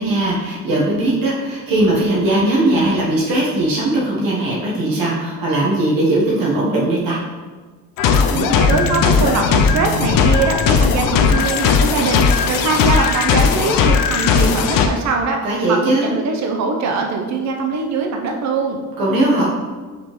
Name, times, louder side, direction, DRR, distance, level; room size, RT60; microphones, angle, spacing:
voice 1, 0.0-7.2 15.4-16.2 19.0-19.5, right 1 dB, 80° right, -5 dB, 1.2 m, -18 dB
sound 1, 8.0-14.9, left 6 dB, 75° left, 0.5 m, -16 dB
voice 2, 8.3-15.4 15.7-18.8, right 4 dB, 55° right, 2 dB, 0.6 m, -22 dB
5.0 x 3.5 x 3.0 m, 1.4 s
cardioid pair, 135°, 34 cm